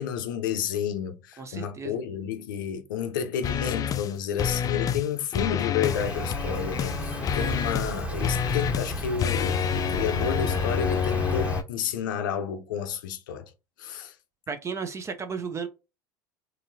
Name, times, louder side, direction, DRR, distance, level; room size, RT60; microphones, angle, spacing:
voice 1, 0.0-13.5 13.8-14.1, left 8 dB, 90° left, 0.6 m, -31 dB
voice 2, 1.4-2.0 14.5-15.7, right 5 dB, 30° right, 0.5 m, -34 dB
sound 1, 3.4-4.1 4.4-5.1 5.3-11.6, left 8 dB, 35° left, 0.3 m, -28 dB
Insect, 5.8-11.6, equal, 10° right, 1.3 m, -33 dB
4.0 x 2.7 x 2.6 m
supercardioid pair, 90°, 10 cm